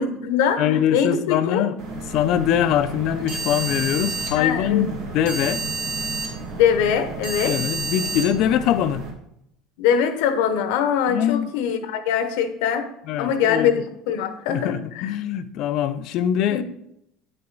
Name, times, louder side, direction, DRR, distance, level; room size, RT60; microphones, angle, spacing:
voice 1, 0.0-1.7 4.3-4.9 6.5-7.6 9.8-12.9 13.2-15.1 16.5-16.6, left 8 dB, 80° left, 0.9 m, -22 dB
voice 2, 0.6-1.8 2.1-5.6 7.4-9.0 11.1-11.5 13.1-13.7 14.5-16.6, left 10 dB, 60° left, 0.5 m, -23 dB
sound 1, 1.8-9.1, right 3 dB, 70° right, 2.1 m, -30 dB
9.2 x 5.6 x 3.9 m
supercardioid pair, 125°, 0 cm